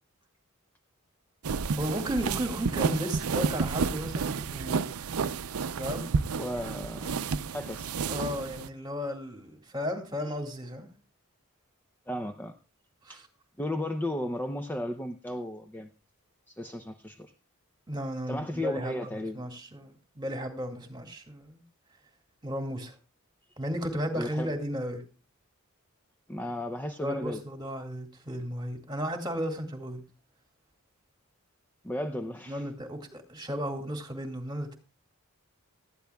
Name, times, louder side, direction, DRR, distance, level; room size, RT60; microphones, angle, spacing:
sound 1, 1.4-8.7, right 5 dB, 80° right, 0.6 m, -31 dB
voice 1, 1.8-4.9 5.8-6.2 8.1-10.9 13.0-13.3 17.9-21.6 22.4-22.9 23.6-25.0 27.0-30.0 32.5-34.8, equal, 20° right, 2.3 m, -34 dB
voice 2, 6.3-7.2 7.5-7.9 12.1-12.6 13.1-13.2 13.6-15.9 16.5-17.3 18.3-19.4 24.1-24.5 26.3-27.4 31.8-32.7, left 1 dB, 10° left, 0.6 m, -34 dB
18.5 x 13.0 x 2.3 m
head